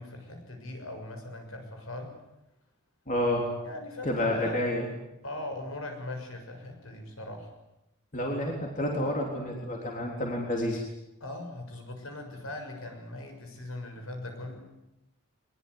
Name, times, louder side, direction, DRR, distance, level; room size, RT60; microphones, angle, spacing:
voice 1, 0.0-2.2 3.6-4.6 5.2-7.5 11.2-14.7, left 1 dB, 70° left, 4 dB, 6.8 m, -40 dB
voice 2, 3.1-3.5 4.0-4.9 8.1-10.8, left 1 dB, 35° left, 0 dB, 3.7 m, -29 dB
22.0 x 22.0 x 9.6 m, 0.90 s
head